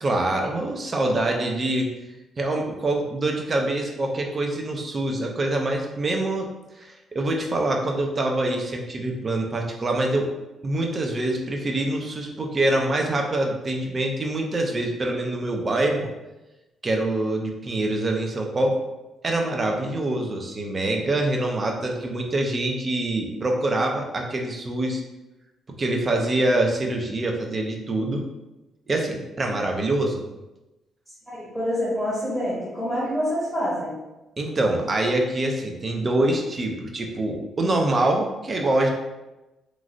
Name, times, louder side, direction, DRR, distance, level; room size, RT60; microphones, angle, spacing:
voice 1, 0.0-2.0 2.4-6.5 6.8-10.3 10.6-16.1 16.8-18.8 19.2-25.0 25.8-28.2 28.9-30.2 34.4-38.9, right 2 dB, 35° right, 2 dB, 0.5 m, -25 dB
voice 2, 31.3-34.0, equal, 5° right, -9 dB, 0.9 m, -27 dB
3.0 x 2.4 x 2.5 m, 1.0 s
cardioid pair, 90°, 0 cm